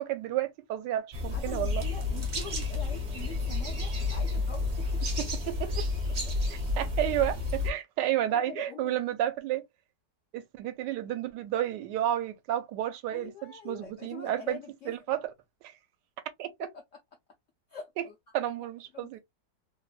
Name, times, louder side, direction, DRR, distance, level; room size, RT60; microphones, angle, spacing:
voice 1, 0.0-1.8 5.2-5.8 6.5-9.6 10.3-14.6 14.9-15.3 16.4-16.5 18.0-18.1 18.3-19.2, right 12 dB, 80° right, 1.2 m, -31 dB
sound 1, 1.1-7.7, left 3 dB, 40° right, 0.6 m, -31 dB
voice 2, 1.3-5.0 8.1-8.9 13.1-14.9 16.7-17.0 17.7-18.3 18.9-19.1, left 7 dB, 70° left, 0.7 m, -44 dB
3.1 x 2.1 x 2.3 m
omnidirectional pair, 1.9 m